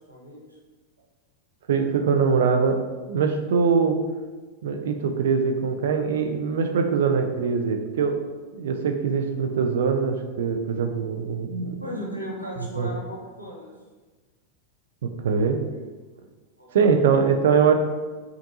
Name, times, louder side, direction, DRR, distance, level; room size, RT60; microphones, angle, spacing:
voice 1, 0.1-0.6 11.8-13.7 16.6-16.7 17.0-17.3, equal, 90° left, -3 dB, 0.9 m, -36 dB
voice 2, 1.7-2.8 3.1-4.0 4.6-8.2 8.5-11.8 12.8-12.9 15.0-15.6 16.7-17.7, right 5 dB, 60° right, 5 dB, 0.4 m, -22 dB
5.2 x 2.6 x 2.7 m, 1.3 s
figure-of-eight pair, 90°, 0 cm